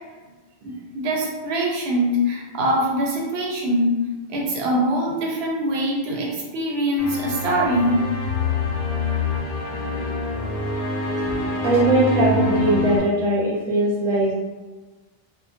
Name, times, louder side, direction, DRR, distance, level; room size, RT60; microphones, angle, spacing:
voice 1, 0.6-3.9 4.3-7.9 9.7-9.8, equal, 90° right, -1 dB, 0.8 m, -23 dB
sound 1, 7.0-13.0, left 2 dB, 75° left, 0.8 m, -25 dB
voice 2, 11.2-14.3, right 1 dB, 45° right, -4 dB, 0.6 m, -20 dB
2.2 x 2.1 x 2.7 m, 1.3 s
omnidirectional pair, 1.0 m